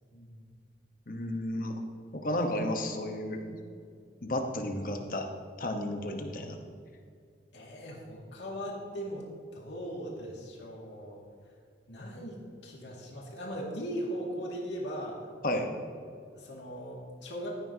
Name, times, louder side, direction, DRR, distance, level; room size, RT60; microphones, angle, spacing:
voice 1, 0.1-0.5 7.5-9.3 9.5-11.2 11.9-15.2 16.3-17.6, equal, 80° left, -2 dB, 2.2 m, -39 dB
voice 2, 1.1-1.7 2.1-3.6 4.2-5.3 5.6-6.6 15.4-15.7, left 1 dB, 50° left, 4 dB, 1.1 m, -32 dB
15.0 x 9.6 x 2.8 m, 2.2 s
head